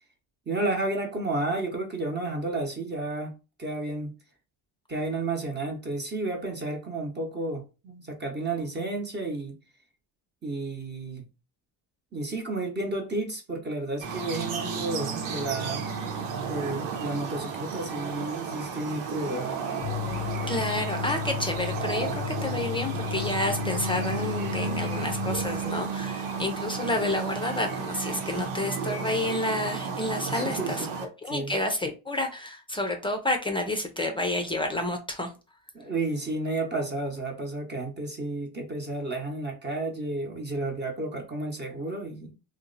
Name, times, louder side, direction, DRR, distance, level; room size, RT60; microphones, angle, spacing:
voice 1, 0.5-3.3 3.6-4.1 4.9-9.5 10.4-11.3 12.1-15.8 16.4-19.5 30.3-30.9 31.2-31.6 35.7-42.3, right 2 dB, 20° right, 1.0 m, -32 dB
sound 1, 14.0-31.1, right 5 dB, 90° right, 0.9 m, -33 dB
sound 2, 19.8-25.9, left 18 dB, 60° left, 0.6 m, -34 dB
voice 2, 20.5-30.9 31.2-35.3, left 1 dB, 10° left, 0.6 m, -30 dB
2.8 x 2.1 x 3.9 m
cardioid pair, 105°, 48 cm